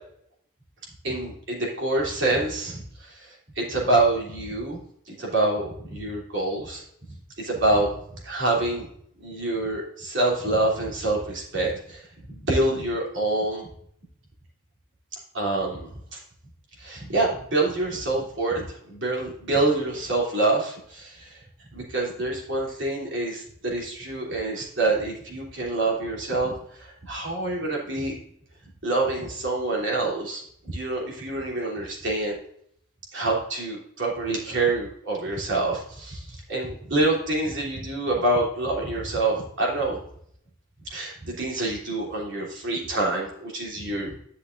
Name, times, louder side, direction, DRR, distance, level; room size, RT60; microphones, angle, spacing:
voice 1, 1.0-4.8 5.1-6.8 7.4-7.9 8.2-8.9 9.2-13.7 15.3-16.2 16.8-21.4 21.7-28.2 28.8-32.4 33.1-40.0 40.9-44.2, right 2 dB, 55° right, -3 dB, 3.1 m, -26 dB
11.0 x 6.4 x 2.6 m, 0.68 s
head